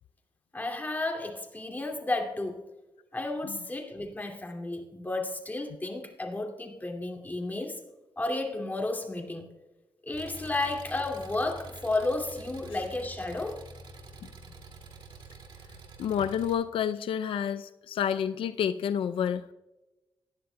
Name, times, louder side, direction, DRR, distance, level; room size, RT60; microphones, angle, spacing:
voice 1, 0.5-2.7 3.1-7.8 8.2-9.5 10.0-13.6, left 2 dB, 20° left, 2 dB, 2.3 m, -32 dB
Engine, 10.1-16.5, right 2 dB, 60° right, 2.3 m, -47 dB
voice 2, 16.0-19.5, left 8 dB, 90° left, 11 dB, 0.4 m, -29 dB
18.0 x 11.0 x 2.2 m, 1.0 s
cardioid pair, 85°, 9 cm